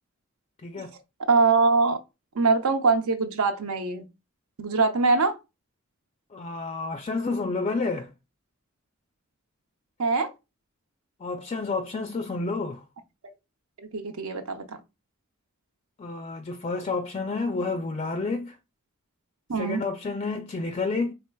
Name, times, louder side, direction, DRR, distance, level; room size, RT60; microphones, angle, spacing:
voice 1, 0.6-0.9 6.3-8.1 11.2-12.8 16.0-18.6 19.6-21.1, left 3 dB, 30° left, 0.3 m, -30 dB
voice 2, 1.3-2.0 2.3-4.0 4.6-5.4 10.0-10.3 13.8-14.8 19.5-19.8, right 4 dB, 80° right, 0.7 m, -23 dB
4.4 x 3.3 x 2.2 m
head